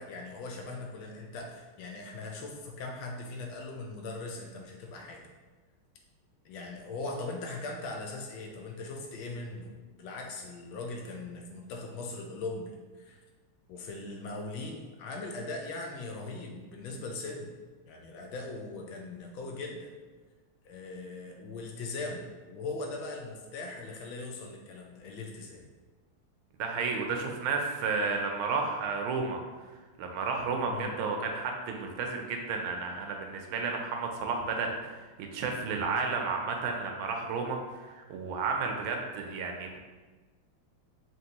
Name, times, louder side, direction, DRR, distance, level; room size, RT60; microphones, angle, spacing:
voice 1, 0.0-5.2 6.4-9.7 10.0-12.7 13.0-13.2 13.7-17.5 17.9-19.9 20.6-25.6 30.7-31.0, left 3 dB, 75° left, 1 dB, 1.3 m, -40 dB
voice 2, 26.6-29.4 30.0-39.8, right 4 dB, 80° right, 2 dB, 1.3 m, -32 dB
5.2 x 2.9 x 2.8 m, 1.3 s
omnidirectional pair, 2.4 m